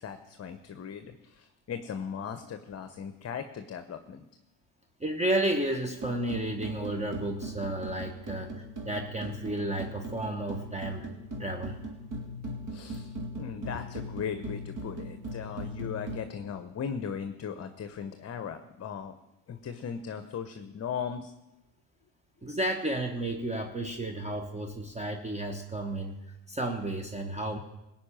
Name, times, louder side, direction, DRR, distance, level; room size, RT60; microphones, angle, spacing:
voice 1, 0.0-4.3 12.7-19.2 19.5-21.3, left 7 dB, 35° left, 9 dB, 0.9 m, -38 dB
voice 2, 5.0-11.1 11.4-11.8 22.4-27.6, right 1 dB, 15° right, 4 dB, 1.2 m, -32 dB
sound 1, 6.0-16.2, equal, 45° right, 2.8 m, -39 dB
16.0 x 5.7 x 8.9 m, 0.95 s
supercardioid pair, 85°, 44 cm